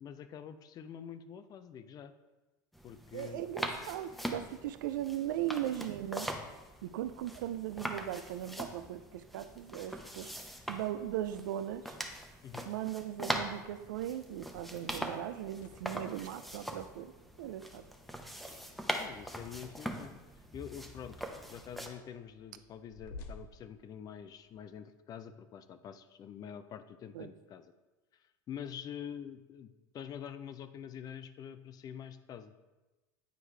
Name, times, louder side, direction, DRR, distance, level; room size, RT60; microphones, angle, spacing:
voice 1, 0.0-2.1 2.8-3.5 12.4-12.7 18.9-20.1 20.5-21.2 21.5-27.7 28.2-32.5, left 8 dB, 40° left, 11 dB, 0.5 m, -46 dB
sound 1, 2.7-21.9, equal, ahead, 0.8 m, -42 dB
voice 2, 3.1-6.3 6.8-10.3 10.7-12.0 12.7-17.1 17.4-17.8 27.1-27.3, right 12 dB, 80° right, 11 dB, 0.4 m, -38 dB
sound 2, 15.5-24.6, left 3 dB, 75° left, 0.7 m, -56 dB
9.1 x 4.6 x 3.3 m, 1.1 s
hypercardioid pair, 90°, 10 cm